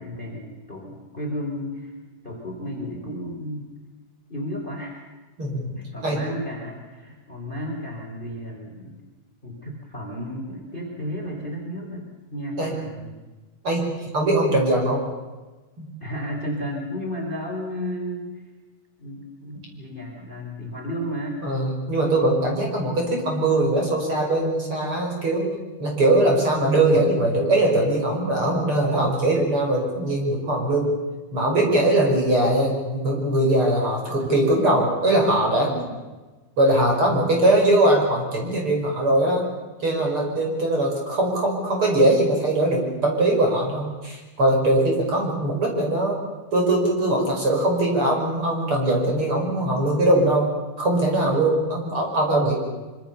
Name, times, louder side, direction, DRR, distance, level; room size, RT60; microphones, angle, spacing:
voice 1, 0.0-1.9 2.2-3.7 4.3-5.0 5.7-9.0 9.4-13.2 16.0-18.4 19.0-21.4 34.1-34.3 35.6-35.9, equal, 15° left, 1 dB, 3.8 m, -33 dB
voice 2, 5.4-5.8 6.0-6.2 12.6-12.7 13.6-13.9 14.1-15.0 15.8-15.9 21.4-25.5 25.8-30.9 31.3-35.7 36.6-39.5 39.8-46.2 46.5-50.5 50.8-52.5, right 1 dB, 35° right, 0 dB, 6.4 m, -21 dB
25.5 x 25.0 x 7.1 m, 1.2 s
omnidirectional pair, 4.4 m